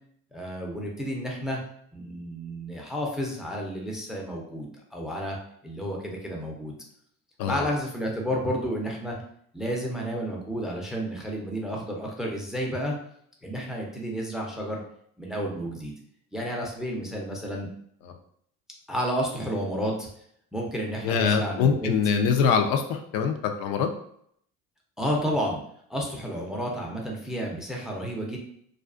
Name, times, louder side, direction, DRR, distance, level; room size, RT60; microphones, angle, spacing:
voice 1, 0.3-1.6 1.9-5.4 5.6-6.7 7.4-9.2 9.5-13.0 13.4-14.8 15.2-15.9 16.3-17.7 18.9-20.1 20.5-21.9 25.0-25.6 25.9-28.4, equal, ahead, -1 dB, 0.4 m, -31 dB
voice 2, 21.0-23.9, left 6 dB, 70° left, 5 dB, 0.5 m, -24 dB
2.4 x 2.3 x 2.3 m, 0.67 s
cardioid pair, 100°, 36 cm